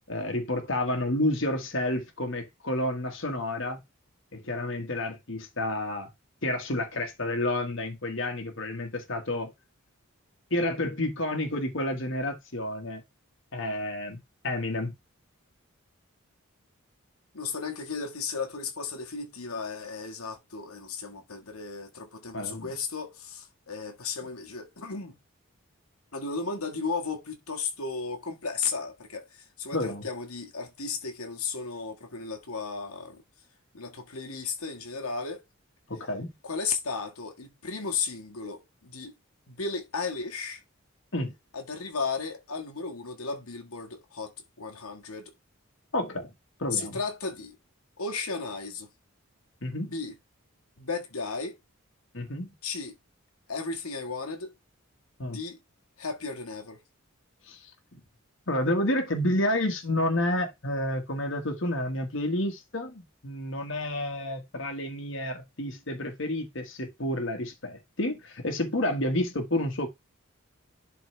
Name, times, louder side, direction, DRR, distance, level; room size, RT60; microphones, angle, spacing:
voice 1, 0.1-3.8 4.3-6.1 6.4-9.5 10.5-13.0 13.5-14.2 14.4-14.9 22.3-22.7 29.7-30.1 35.9-36.3 41.1-41.3 45.9-46.3 46.6-47.0 49.6-49.9 52.1-52.5 55.2-55.4 57.5-58.0 58.5-69.9, left 1 dB, 60° left, 1.6 m, -30 dB
voice 2, 17.3-25.2 26.1-33.2 33.7-35.4 36.4-39.1 39.5-40.6 41.5-45.3 46.7-47.6 48.0-48.9 49.8-50.1 50.8-51.6 52.6-53.0 53.5-54.5 55.2-55.6 56.0-56.8, left 4 dB, 85° left, 1.7 m, -34 dB
11.0 x 4.2 x 3.3 m
head